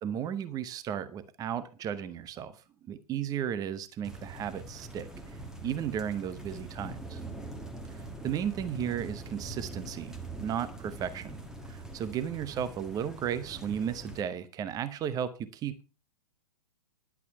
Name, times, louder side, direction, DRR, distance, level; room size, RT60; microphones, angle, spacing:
voice 1, 0.0-2.6 2.9-5.1 5.6-7.2 8.2-11.4 11.7-15.8, right 9 dB, 20° right, 14 dB, 0.8 m, -34 dB
sound 1, 4.0-14.2, right 2 dB, 5° right, 1.4 m, -43 dB
11.0 x 8.4 x 5.6 m, 0.33 s
figure-of-eight pair, 115°, 20 cm